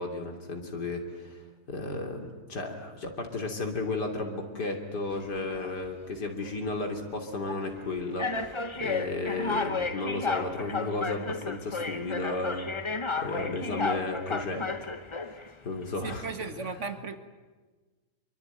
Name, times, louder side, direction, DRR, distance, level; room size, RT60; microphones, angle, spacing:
voice 1, 0.0-1.4 1.7-12.7 13.2-14.9 15.3-16.3, left 2 dB, 85° left, 4 dB, 3.7 m, -34 dB
sound 1, 5.2-5.7 6.4-6.6 7.5-7.6 8.2-15.5, left 4 dB, 20° left, 0.9 m, -33 dB
voice 2, 16.0-17.2, right 4 dB, 45° right, 9 dB, 1.9 m, -36 dB
26.0 x 23.5 x 9.3 m, 1.3 s
omnidirectional pair, 1.7 m